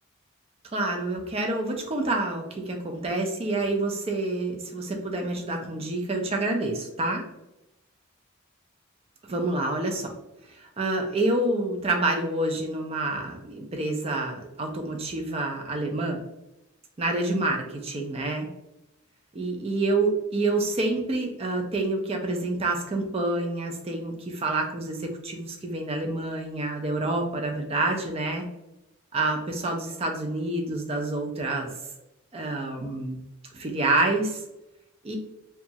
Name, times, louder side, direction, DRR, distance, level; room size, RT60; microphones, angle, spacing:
voice 1, 0.7-7.2 9.3-10.1 10.5-16.2 17.0-18.5 19.3-28.4 29.1-31.7 32.3-33.2 33.5-34.4 35.0-35.2, right 2 dB, 30° right, 2 dB, 0.4 m, -28 dB
2.9 x 2.3 x 2.7 m, 0.91 s
head